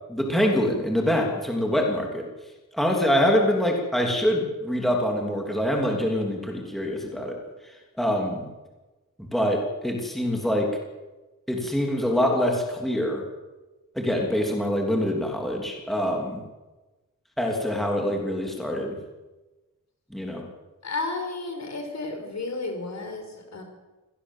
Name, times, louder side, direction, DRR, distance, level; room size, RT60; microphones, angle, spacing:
voice 1, 0.1-2.3 2.7-7.4 7.6-8.5 9.2-10.8 11.5-13.2 13.9-16.4 17.4-19.0 20.1-20.4, equal, ahead, 0 dB, 3.0 m, -25 dB
voice 2, 20.8-23.6, left 3 dB, 55° left, 5 dB, 5.0 m, -32 dB
25.5 x 17.5 x 7.4 m, 1.2 s
wide cardioid pair, 175°, 33 cm